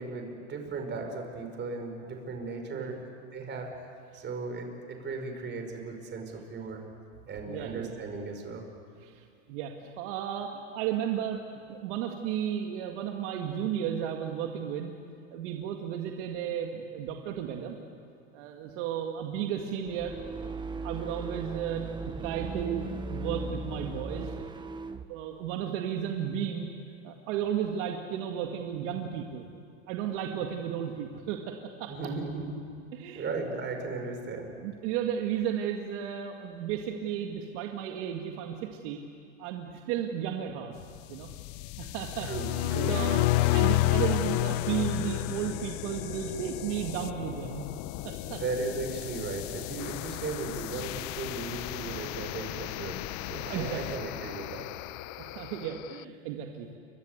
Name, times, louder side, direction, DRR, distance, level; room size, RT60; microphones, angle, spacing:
voice 1, 0.0-3.0 3.3-6.8 7.3-8.6 31.9-32.5 33.2-34.5 42.2-43.0 48.2-54.7, right 3 dB, 30° right, 4 dB, 5.3 m, -36 dB
voice 2, 7.5-8.0 9.0-14.9 15.3-17.8 18.3-20.1 20.8-21.8 22.2-24.3 25.1-26.7 27.0-29.5 29.9-31.9 32.9-33.3 34.5-39.0 39.4-40.8 41.1-41.3 41.8-43.2 43.5-47.7 48.0-48.4 51.9-52.0 53.5-53.8 55.2-56.7, right 9 dB, 65° right, 2 dB, 2.2 m, -34 dB
sound 1, 19.8-25.1, right 3 dB, 10° right, 1.0 m, -37 dB
sound 2, 40.7-56.0, left 18 dB, 50° left, 0.7 m, -39 dB
sound 3, 42.1-46.0, left 17 dB, 65° left, 1.3 m, -27 dB
29.5 x 24.5 x 8.2 m, 2.3 s
supercardioid pair, 135°, 38 cm